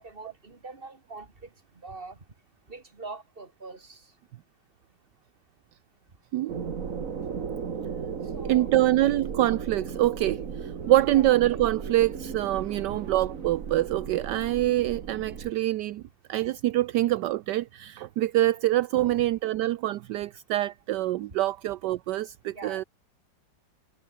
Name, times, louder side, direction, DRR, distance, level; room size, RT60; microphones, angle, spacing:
voice 1, 0.0-2.3 2.7-4.2 6.1-6.2 7.5-7.6 8.2-8.7 10.8-11.3 12.8-13.0 19.2-19.3 22.5-22.9, right 3 dB, 30° right, 2.9 m, -44 dB
sound 1, 6.5-15.5, right 6 dB, 50° right, 1.9 m, -36 dB
voice 2, 8.5-16.0 16.3-22.8, right 15 dB, 75° right, 1.2 m, -25 dB
omnidirectional pair, 1.9 m